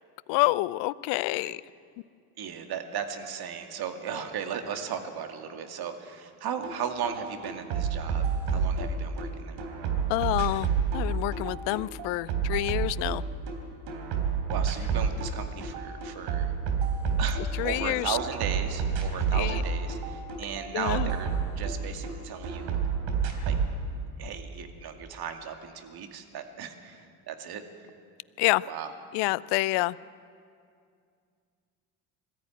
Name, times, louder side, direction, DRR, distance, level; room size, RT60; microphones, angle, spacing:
voice 1, 0.3-1.6 10.1-13.2 17.6-18.2 19.3-19.6 20.7-21.1 28.4-28.6 29.1-30.0, left 20 dB, 65° left, 20 dB, 0.6 m, -27 dB
voice 2, 2.4-9.6 14.5-16.5 17.2-21.3 21.6-22.8 23.4-23.6 24.2-27.6 28.6-28.9, right 7 dB, 55° right, 6 dB, 2.4 m, -36 dB
sound 1, 6.6-6.8 7.0-9.3 9.6-13.6 13.9-15.3 15.6-17.9 18.2-22.1 22.4-23.7, right 6 dB, 70° right, 3.3 m, -29 dB
21.0 x 14.0 x 9.3 m, 2.3 s
hypercardioid pair, 75°, 46 cm